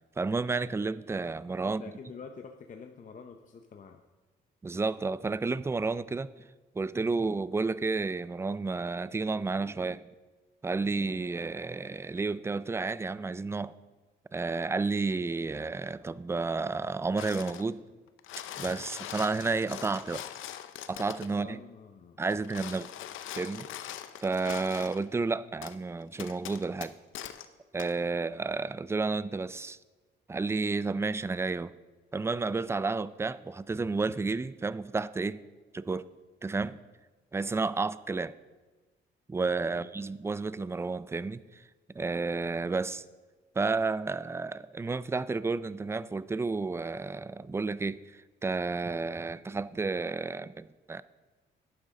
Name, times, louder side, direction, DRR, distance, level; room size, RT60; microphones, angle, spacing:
voice 1, 0.2-1.8 4.6-6.3 6.7-10.1 10.6-13.7 14.3-17.8 18.6-20.2 20.9-21.6 22.2-22.9 23.4-23.7 24.2-26.9 27.7-29.8 30.3-31.7 32.1-35.4 35.7-36.0 36.4-36.8 37.3-38.3 39.3-41.6 41.9-43.0 43.6-51.0, right 3 dB, 15° right, 17 dB, 0.3 m, -31 dB
voice 2, 1.6-4.0 21.3-22.2 39.7-39.9, left 5 dB, 40° left, 5 dB, 0.7 m, -47 dB
sound 1, 17.2-17.7 18.1-21.3 22.2-25.0 25.6-25.8 26.2-27.5 27.8-27.9, left 11 dB, 85° left, 0.6 m, -42 dB
11.5 x 9.6 x 3.7 m, 1.3 s
cardioid pair, 90°, 20 cm